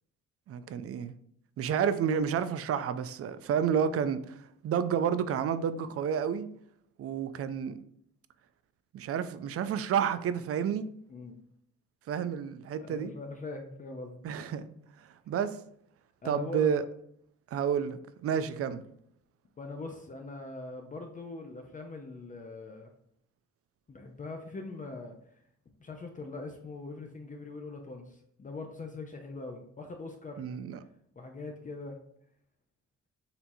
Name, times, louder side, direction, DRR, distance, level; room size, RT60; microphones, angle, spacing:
voice 1, 0.5-1.1 1.6-6.5 7.0-7.8 8.9-10.9 12.1-13.1 14.2-14.7 15.3-15.6 16.2-16.8 17.5-18.8 30.4-30.8, right 7 dB, 50° right, 13 dB, 0.4 m, -30 dB
voice 2, 12.8-14.2 16.2-16.8 19.6-22.9 23.9-25.2 25.8-30.6 31.2-32.0, left 3 dB, 25° left, 3 dB, 0.6 m, -42 dB
6.7 x 2.8 x 2.7 m, 0.70 s
cardioid pair, 90°, 30 cm